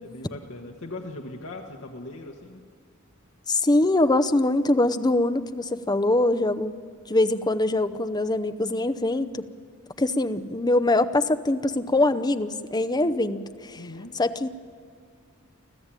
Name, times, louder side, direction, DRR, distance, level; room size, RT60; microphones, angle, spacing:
voice 1, 0.0-2.7 13.7-14.1, left 2 dB, 65° left, 1 dB, 1.5 m, -39 dB
voice 2, 3.5-6.7 7.1-9.4 10.0-13.8 14.1-14.5, left 2 dB, 20° left, 11 dB, 0.7 m, -23 dB
29.0 x 13.0 x 9.0 m, 2.1 s
head